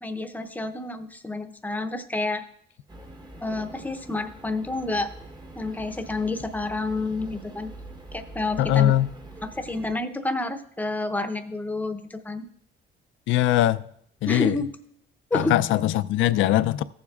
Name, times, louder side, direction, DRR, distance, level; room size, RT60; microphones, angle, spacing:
voice 1, 0.0-2.4 3.4-5.1 5.6-7.7 8.1-8.9 9.4-12.4 14.3-14.7 15.3-15.5, left 2 dB, 10° left, 0.7 m, -29 dB
sound 1, 2.9-10.0, right 2 dB, 20° right, 1.0 m, -44 dB
voice 2, 8.6-9.1 13.3-13.8 14.2-14.6 15.3-16.8, left 13 dB, 75° left, 0.4 m, -21 dB
15.5 x 7.2 x 2.4 m
cardioid pair, 110°, 20 cm